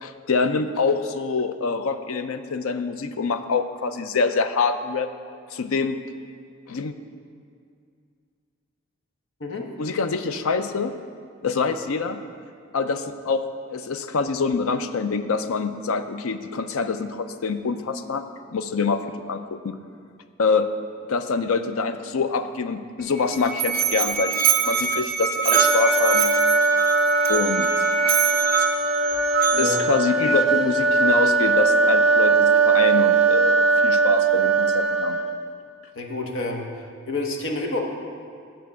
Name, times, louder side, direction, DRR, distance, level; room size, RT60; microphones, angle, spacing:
voice 1, 0.0-5.1 5.5-6.0 6.7-6.9 9.8-10.9 11.4-12.2 12.7-18.3 18.5-19.8 20.4-20.7 21.1-26.3 27.3-27.7 29.6-35.2, left 4 dB, 85° left, 10 dB, 0.5 m, -25 dB
Musical instrument, 23.0-30.0, right 8 dB, 45° right, 0.6 m, -24 dB
sound 1, 25.5-35.4, right 4 dB, ahead, 0.5 m, -20 dB
voice 2, 29.5-29.8 35.9-36.7 37.1-37.9, left 2 dB, 65° left, 1 dB, 1.0 m, -28 dB
9.4 x 4.5 x 7.5 m, 2.3 s
head